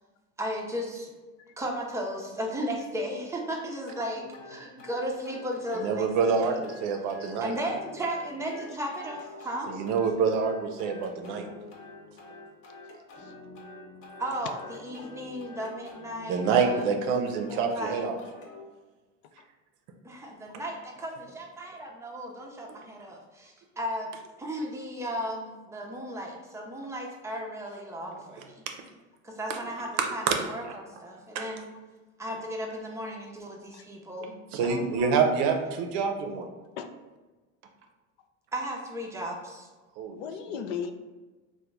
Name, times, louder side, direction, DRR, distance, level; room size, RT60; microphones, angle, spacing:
voice 1, 0.4-1.1 1.6-6.6 7.4-9.8 14.2-16.9 17.4-18.0 20.0-24.1 24.4-28.6 29.2-31.6 32.2-34.4 34.6-35.2 38.5-39.7, equal, 10° right, -1 dB, 0.5 m, -35 dB
sound 1, 3.9-18.6, left 3 dB, 35° left, 0.7 m, -47 dB
voice 2, 5.7-7.5 9.7-11.5 16.3-18.2 28.1-28.2 28.7-28.8 30.0-30.4 31.3-31.4 34.5-36.5 40.0-40.2 40.5-40.6, right 5 dB, 60° right, 4 dB, 0.6 m, -27 dB
voice 3, 40.2-40.9, left 7 dB, 70° left, 8 dB, 0.5 m, -37 dB
2.9 x 2.2 x 3.4 m, 1.2 s
supercardioid pair, 105°, 38 cm